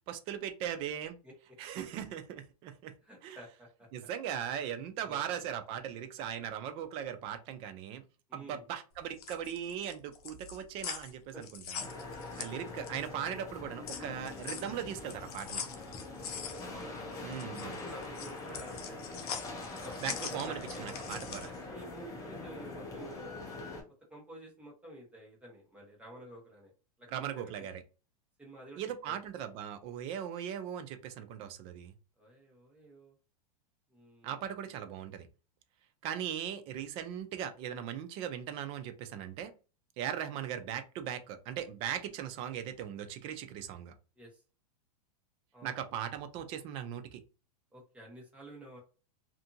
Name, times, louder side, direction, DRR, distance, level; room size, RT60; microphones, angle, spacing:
voice 1, 0.1-1.2 1.6-2.9 3.2-3.4 3.9-8.0 8.3-11.6 12.4-15.6 17.2-17.8 20.0-21.5 27.1-27.8 28.8-31.9 34.2-35.3 36.0-39.5 40.0-43.9 45.6-47.2, right 9 dB, 30° right, 8 dB, 0.4 m, -39 dB
voice 2, 3.0-3.9 5.0-5.5 8.3-8.6 11.3-11.4 16.1-17.0 17.6-19.1 19.6-20.8 21.4-23.4 24.1-26.7 27.0-27.7 28.4-29.2 32.2-33.2 33.9-34.5 44.2-44.4 45.5-45.8 47.7-48.8, right 1 dB, 5° right, -3 dB, 1.0 m, -51 dB
sound 1, 9.0-13.1 13.5-21.6, left 7 dB, 70° left, 0.6 m, -43 dB
sound 2, 11.8-23.8, left 2 dB, 15° left, 0.6 m, -43 dB
2.6 x 2.5 x 2.6 m, 0.33 s
supercardioid pair, 155°, 20 cm